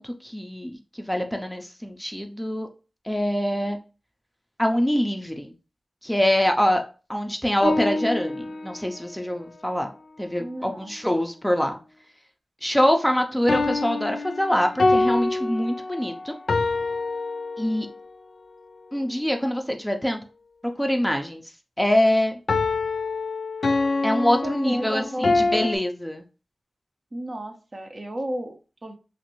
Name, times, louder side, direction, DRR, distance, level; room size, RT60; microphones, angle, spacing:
voice 1, 0.0-2.7 3.1-3.8 4.6-5.5 6.0-6.8 7.1-9.9 10.2-11.8 12.6-16.3 17.6-17.9 18.9-20.2 20.8-21.4 21.8-22.4 24.0-26.2, equal, 5° left, 4 dB, 0.4 m, -24 dB
sound 1, 7.6-9.0 13.5-18.0 22.5-25.8, left 3 dB, 70° left, 0.4 m, -25 dB
voice 2, 10.4-10.9 24.2-25.4 27.1-29.0, right 1 dB, 45° right, 5 dB, 0.6 m, -33 dB
3.0 x 2.5 x 2.9 m, 0.33 s
wide cardioid pair, 60°, 0 cm